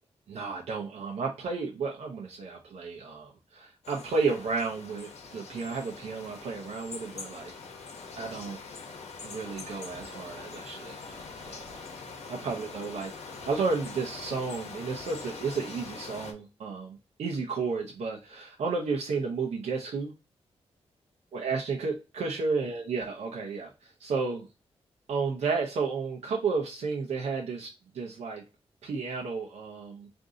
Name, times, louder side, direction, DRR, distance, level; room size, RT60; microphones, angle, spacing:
voice 1, 0.3-7.5 8.2-8.6 9.2-11.9 12.3-13.1 13.4-20.1 21.3-24.5 25.1-27.7 27.9-28.4 28.8-30.1, right 4 dB, 80° right, 0 dB, 0.7 m, -32 dB
sound 1, 3.8-16.3, left 4 dB, 85° left, 0.9 m, -43 dB
3.7 x 2.6 x 3.7 m, 0.29 s
wide cardioid pair, 105°, 11 cm